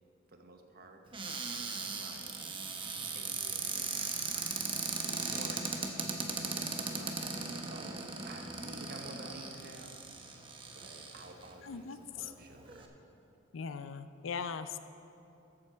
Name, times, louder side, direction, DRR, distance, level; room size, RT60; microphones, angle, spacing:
voice 1, 0.3-4.0 4.3-4.8 5.1-10.4 10.7-12.9, right 2 dB, 50° right, 4 dB, 0.9 m, -52 dB
Cupboard open or close, 1.1-11.5 12.2-12.3 12.5-12.8, right 4 dB, 25° right, 0.8 m, -38 dB
voice 2, 11.6-12.3 13.5-14.8, left 6 dB, 75° left, 11 dB, 0.5 m, -40 dB
13.5 x 7.6 x 4.5 m, 2.8 s
head